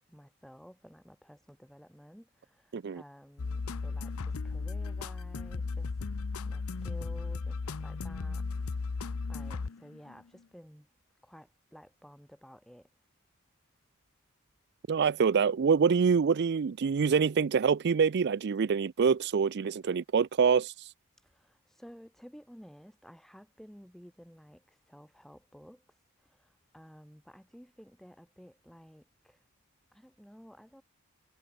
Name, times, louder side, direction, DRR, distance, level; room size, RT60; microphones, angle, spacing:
voice 1, 0.1-5.9 6.5-8.5 9.3-10.9 11.2-12.9 21.2-25.8 26.3-26.5 26.7-29.4 29.9-30.8, equal, ahead, 4.8 m, -53 dB
sound 1, 3.4-10.2, left 4 dB, 75° left, 0.7 m, -35 dB
voice 2, 14.9-20.9, right 6 dB, 50° right, 0.4 m, -26 dB
head